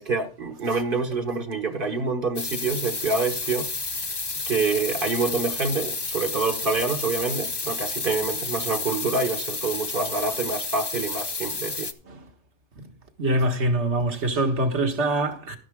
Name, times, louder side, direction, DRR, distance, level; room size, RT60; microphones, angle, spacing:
voice 1, 0.0-3.7 4.0-4.1 4.5-11.9, right 3 dB, 50° right, 1.2 m, -27 dB
sound 1, 2.4-11.9, left 3 dB, 25° left, 0.7 m, -31 dB
voice 2, 13.2-15.6, right 1 dB, 75° right, 1.9 m, -24 dB
12.5 x 10.5 x 3.6 m
omnidirectional pair, 1.2 m